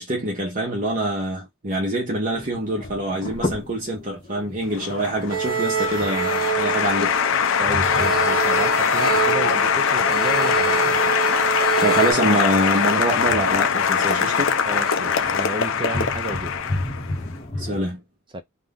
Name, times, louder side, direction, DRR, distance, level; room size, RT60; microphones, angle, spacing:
voice 1, 0.0-7.1 11.8-14.5 17.6-18.0, right 1 dB, 40° right, 0.9 m, -25 dB
sound 1, 2.3-17.8, left 1 dB, 30° left, 0.7 m, -35 dB
Applause, 4.7-17.2, left 7 dB, 65° left, 0.5 m, -22 dB
sound 2, 5.3-7.4 7.8-12.1, right 6 dB, 70° right, 0.9 m, -26 dB
voice 2, 7.6-11.0 14.7-16.6 18.3-18.4, right 1 dB, 25° right, 0.4 m, -32 dB
2.7 x 2.1 x 3.5 m
head